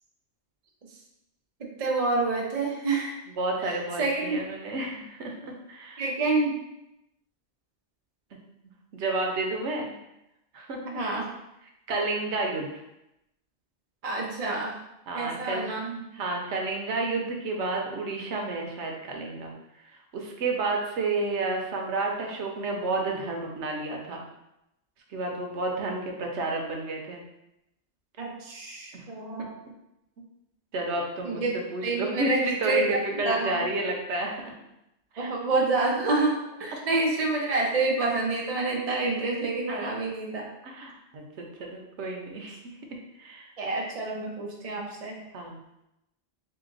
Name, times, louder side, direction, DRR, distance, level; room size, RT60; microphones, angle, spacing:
voice 1, 1.6-3.2 3.6-4.5 6.0-6.6 10.8-11.3 14.0-14.8 15.1-16.0 28.2-29.6 31.2-31.6 31.8-33.7 35.2-40.5 43.6-45.2, right 3 dB, 40° right, -1 dB, 0.7 m, -28 dB
voice 2, 3.4-6.0 8.9-9.9 10.5-11.0 11.9-12.7 15.1-15.7 16.1-19.5 20.1-24.2 25.1-27.2 28.9-29.0 30.7-31.4 31.7-34.3 35.1-35.3 39.7-39.9 40.6-42.6 43.2-43.5 45.3-45.6, right 2 dB, 85° right, 1 dB, 1.0 m, -31 dB
3.4 x 2.9 x 3.8 m, 0.87 s
omnidirectional pair, 1.1 m